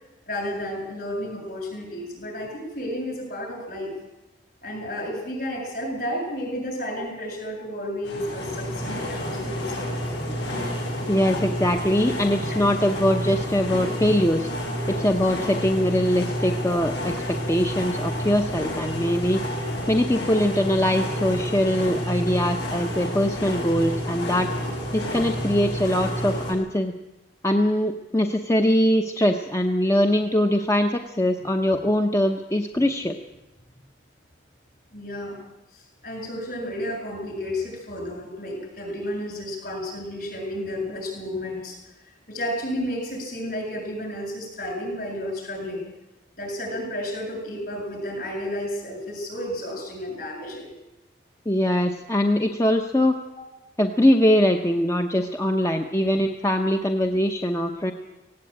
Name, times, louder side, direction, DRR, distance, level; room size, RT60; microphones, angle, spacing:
voice 1, 0.3-3.9 4.6-10.0 34.9-35.4 35.7-41.8 42.0-45.9 46.4-50.7 53.3-53.4, left 1 dB, 50° left, 1 dB, 7.7 m, -32 dB
sound 1, 8.0-26.5, equal, 65° left, 7.0 m, -29 dB
voice 2, 11.1-14.5 14.9-19.4 19.9-24.5 24.9-26.9 27.4-33.2 51.5-53.2 53.8-57.9, equal, 15° left, 5 dB, 0.8 m, -22 dB
17.5 x 17.0 x 8.8 m, 0.99 s
head